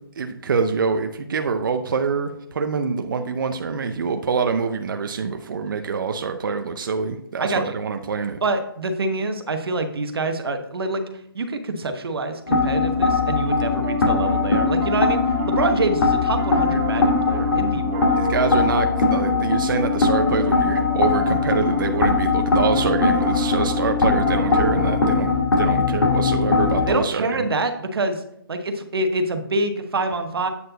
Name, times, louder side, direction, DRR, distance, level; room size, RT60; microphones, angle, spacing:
voice 1, 0.2-8.4 18.2-25.3 25.6-27.5, right 5 dB, 60° right, 6 dB, 0.6 m, -25 dB
voice 2, 8.4-11.0 11.3-18.2 26.9-28.2 28.5-30.5, right 2 dB, 90° right, 7 dB, 1.1 m, -26 dB
sound 1, 12.5-26.9, left 4 dB, 80° left, 2.0 m, -21 dB
Piano, 12.7-25.1, left 2 dB, 20° right, 1.1 m, -30 dB
8.4 x 4.5 x 4.0 m, 0.77 s
hypercardioid pair, 170°, 12 cm